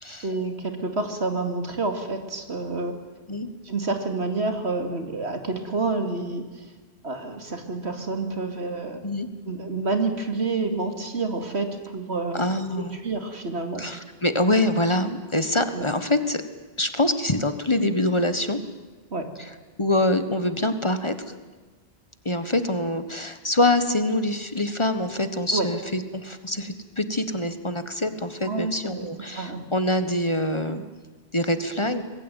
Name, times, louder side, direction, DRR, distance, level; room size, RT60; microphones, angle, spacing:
voice 1, 0.2-2.9 3.7-6.6 7.0-9.0 9.5-12.4 13.0-13.8 15.7-15.8 19.1-19.3 25.5-25.7 28.4-29.1 29.4-29.7, right 3 dB, 80° right, 6 dB, 2.8 m, -28 dB
voice 2, 12.3-13.0 13.8-16.4 16.8-18.6 19.4-19.5 19.8-21.1 22.2-30.8 31.3-32.0, left 1 dB, 25° left, 10 dB, 1.4 m, -25 dB
25.0 x 21.0 x 9.2 m, 1.3 s
omnidirectional pair, 1.1 m